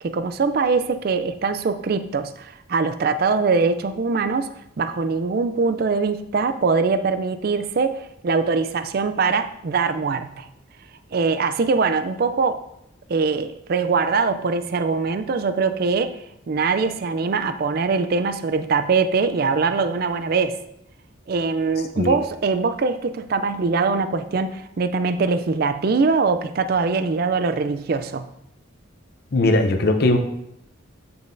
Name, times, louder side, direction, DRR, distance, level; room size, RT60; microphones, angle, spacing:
voice 1, 0.0-4.5 4.8-10.5 11.1-12.6 13.1-16.2 16.5-20.6 21.3-28.3, right 4 dB, 45° right, 10 dB, 0.4 m, -22 dB
voice 2, 29.3-30.2, left 2 dB, 50° left, 5 dB, 0.6 m, -19 dB
8.3 x 5.4 x 2.6 m, 0.79 s
head